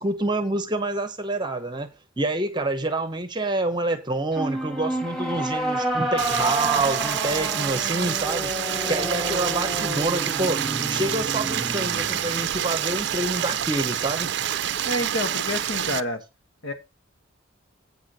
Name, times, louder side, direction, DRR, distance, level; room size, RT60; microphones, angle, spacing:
voice 1, 0.0-1.9 2.2-10.6 10.9-14.3, right 2 dB, 20° right, 0.8 m, -27 dB
sound 1, 4.3-13.7, right 1 dB, ahead, 1.8 m, -30 dB
Stream, 6.2-16.0, right 10 dB, 55° right, 0.5 m, -27 dB
voice 2, 14.8-16.2 16.6-16.7, left 1 dB, 75° left, 1.4 m, -28 dB
8.3 x 4.5 x 6.5 m
head